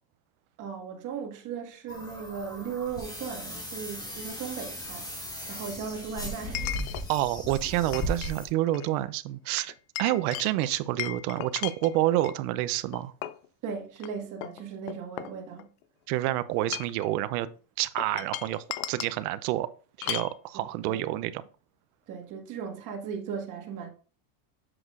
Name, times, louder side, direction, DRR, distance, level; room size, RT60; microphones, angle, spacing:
voice 1, 0.6-5.1 5.5-6.7 13.6-15.6 20.5-21.1 22.1-23.9, right 6 dB, 45° right, 1.9 m, -37 dB
sound 1, 1.9-8.5, equal, 10° left, 1.5 m, -37 dB
Chink clink, 3.1-3.2 6.6-7.1 7.6-8.4 8.7-8.9 9.6-12.4 12.9-13.5 14.0-14.1 14.4-15.8 16.5-17.1 18.0-19.2 20.0-20.3, left 14 dB, 70° left, 0.7 m, -36 dB
voice 2, 7.1-9.7 10.0-13.1 16.1-17.5 17.8-19.7 20.0-21.4, right 15 dB, 80° right, 0.7 m, -28 dB
7.8 x 6.2 x 2.5 m
cardioid pair, 145°, 45 cm